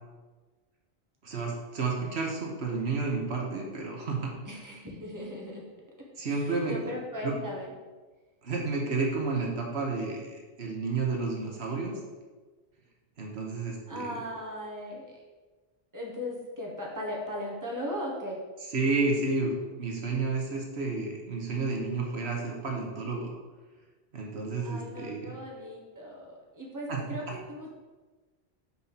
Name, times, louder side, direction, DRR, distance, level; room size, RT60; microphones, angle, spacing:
voice 1, 1.2-4.3 6.2-6.8 7.2-7.3 8.4-12.0 13.2-14.2 18.7-23.3 24.1-25.3 26.9-27.2, right 3 dB, 80° right, 0 dB, 1.4 m, -31 dB
voice 2, 4.4-5.6 6.3-7.7 13.9-15.1 15.9-18.4 24.6-27.7, left 1 dB, 20° right, -3 dB, 1.4 m, -38 dB
6.2 x 4.4 x 5.6 m, 1.3 s
omnidirectional pair, 1.1 m